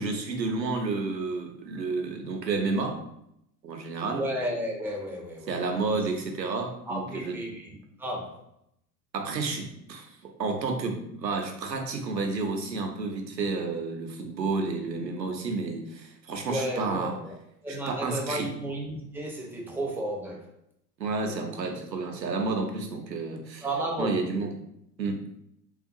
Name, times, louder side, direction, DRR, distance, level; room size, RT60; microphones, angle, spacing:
voice 1, 0.0-3.0 3.6-4.2 5.5-7.3 9.1-17.2 17.7-18.5 21.0-23.7 24.0-24.5 25.0-25.2, right 3 dB, 90° right, 3 dB, 0.7 m, -31 dB
voice 2, 4.1-5.5 6.9-7.7 8.0-8.4 16.5-17.3 17.6-20.5 23.6-24.2, right 1 dB, 5° right, -1 dB, 0.4 m, -32 dB
3.6 x 2.3 x 2.6 m, 0.75 s
figure-of-eight pair, 75°, 49 cm